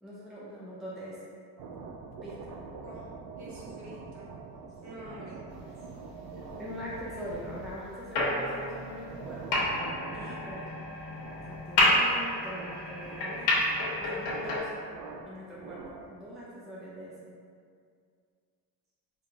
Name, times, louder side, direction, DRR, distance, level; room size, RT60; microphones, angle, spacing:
voice 1, 0.0-1.2 2.2-2.4 6.6-9.6 10.1-10.7 11.5-13.5 14.0-14.7 15.3-17.1, equal, ahead, -7 dB, 0.4 m, -42 dB
sound 1, 1.6-16.3, right 4 dB, 60° right, 0.5 m, -45 dB
voice 2, 3.4-4.3 4.8-5.5 6.3-6.4 7.0-7.3, equal, 40° right, -6 dB, 1.2 m, -48 dB
sound 2, 8.2-14.6, left 1 dB, 80° left, 1.1 m, -29 dB
5.2 x 2.8 x 2.4 m, 2.2 s
cardioid pair, 130°, 42 cm